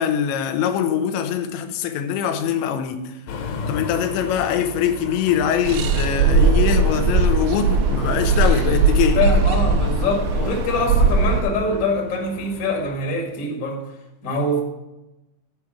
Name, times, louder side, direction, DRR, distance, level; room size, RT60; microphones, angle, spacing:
voice 1, 0.0-3.1 3.7-9.2, left 8 dB, 90° left, 7 dB, 3.1 m, -23 dB
sound 1, 3.3-13.0, left 4 dB, 75° left, 3.2 m, -36 dB
sound 2, 5.6-11.4, right 3 dB, 80° right, 2.3 m, -19 dB
voice 2, 9.1-13.8 14.2-14.6, left 2 dB, 45° left, 0 dB, 1.0 m, -24 dB
10.5 x 4.7 x 7.1 m, 0.98 s
omnidirectional pair, 5.1 m